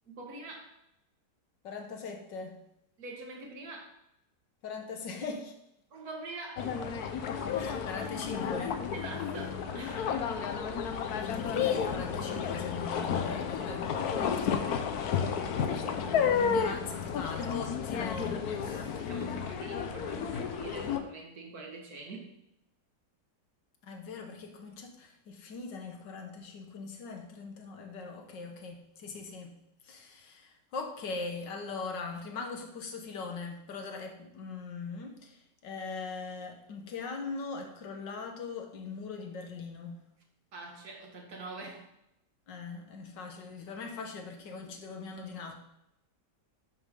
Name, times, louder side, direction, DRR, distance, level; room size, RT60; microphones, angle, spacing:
voice 1, 0.1-0.7 3.0-3.9 5.9-6.8 8.9-10.1 13.6-13.7 14.5-14.8 18.6-22.4 40.5-41.9, right 3 dB, 60° right, 1 dB, 2.3 m, -44 dB
voice 2, 1.6-2.6 4.6-5.6 7.5-8.8 11.2-14.7 15.5-19.2 23.8-29.6 29.8-40.0 42.5-45.5, left 4 dB, 90° left, 4 dB, 2.0 m, -41 dB
sound 1, 6.6-21.0, left 7 dB, 65° left, 1.3 m, -32 dB
11.0 x 7.0 x 3.9 m, 0.80 s
omnidirectional pair, 1.9 m